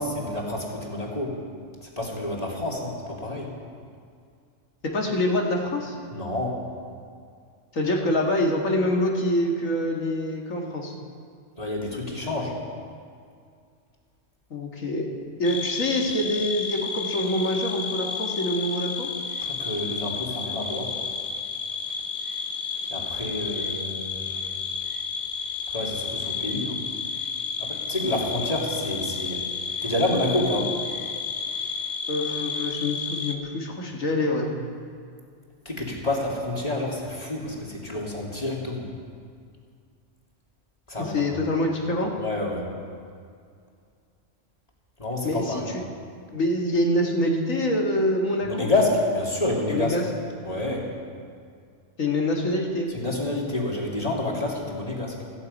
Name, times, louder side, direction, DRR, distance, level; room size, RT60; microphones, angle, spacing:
voice 1, 0.0-1.4 1.8-3.5 6.1-6.6 11.6-12.6 19.4-20.9 22.9-24.6 25.7-26.8 27.6-29.5 29.8-30.8 35.6-38.9 40.9-41.4 42.2-42.7 45.0-45.7 48.4-50.0 50.4-50.9 52.9-55.2, left 2 dB, 30° left, -2 dB, 2.6 m, -28 dB
voice 2, 4.8-6.0 7.7-10.9 14.5-15.1 15.4-19.1 32.1-34.5 41.0-42.1 45.2-45.6 46.3-48.7 49.7-50.0 52.0-52.9, left 1 dB, 90° left, 0 dB, 2.3 m, -25 dB
sound 1, 15.4-33.4, left 5 dB, 45° left, 1.1 m, -31 dB
17.5 x 15.0 x 5.4 m, 2.2 s
omnidirectional pair, 1.3 m